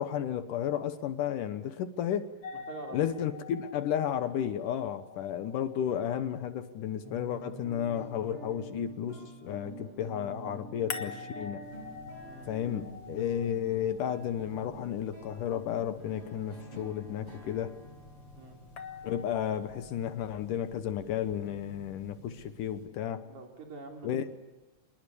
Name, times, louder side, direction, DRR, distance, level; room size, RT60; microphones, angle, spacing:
voice 1, 0.0-2.3 2.9-11.6 12.5-17.8 19.0-23.3 24.0-24.2, left 9 dB, 70° left, 10 dB, 2.4 m, -33 dB
sound 1, 2.4-7.4 10.9-15.0 18.8-20.0, left 5 dB, 50° left, 2.1 m, -46 dB
voice 2, 2.5-3.1 12.2-12.5 18.4-18.6 23.2-24.3, right 3 dB, 55° right, 2 dB, 4.5 m, -45 dB
sound 2, 7.0-19.8, right 2 dB, 40° right, 8.6 m, -48 dB
sound 3, 11.6-22.9, left 3 dB, 15° left, 7.8 m, -54 dB
27.0 x 21.0 x 8.4 m, 1.1 s
omnidirectional pair, 4.1 m